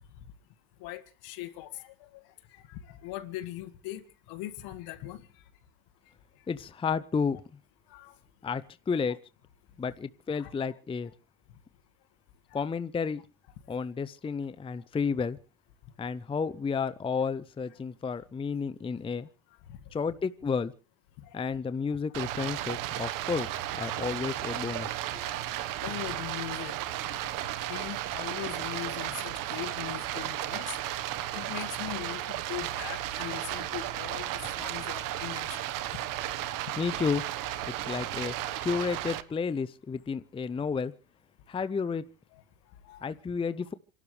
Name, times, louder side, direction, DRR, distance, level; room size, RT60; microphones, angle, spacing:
voice 1, 0.8-1.9 2.5-4.0 4.3-5.2 7.9-8.2 10.4-10.5 12.5-12.7 19.7-19.8 21.2-21.3 25.2-26.8 27.0-27.2 27.7-30.9 31.2-35.7 40.5-40.6 42.3-42.4 42.8-43.0, left 15 dB, 60° left, 2.1 m, -40 dB
voice 2, 6.5-7.4 8.4-9.2 9.8-11.1 12.5-13.2 13.7-15.4 16.0-19.3 19.9-20.7 21.3-25.2 36.8-37.2 37.9-40.9 41.5-42.0 43.0-43.7, left 5 dB, 15° left, 0.7 m, -31 dB
Stream, 22.1-39.2, right 13 dB, 50° right, 1.4 m, -34 dB
28.5 x 12.0 x 3.3 m
supercardioid pair, 110°, 40 cm